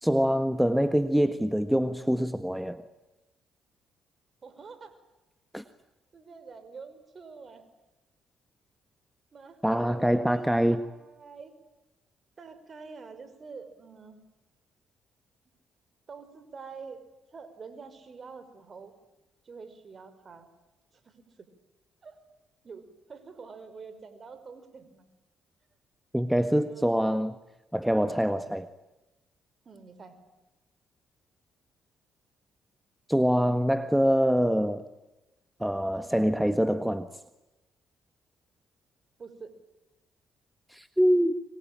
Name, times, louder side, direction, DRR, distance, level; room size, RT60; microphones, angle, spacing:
voice 1, 0.0-2.8 5.5-5.6 9.6-10.8 26.1-27.3 27.7-28.7 33.1-34.8 35.6-37.1 40.7-41.3, equal, 5° right, 11 dB, 1.6 m, -25 dB
voice 2, 4.4-5.0 6.1-7.6 9.3-11.5 12.4-14.2 16.1-17.0 17.3-18.9 19.4-20.5 21.0-21.5 22.0-22.2 22.6-25.1 26.5-26.9 29.7-30.2 39.2-39.5, right 5 dB, 45° right, 11 dB, 5.4 m, -46 dB
24.5 x 23.5 x 8.9 m, 1.0 s
hypercardioid pair, 50°, 0 cm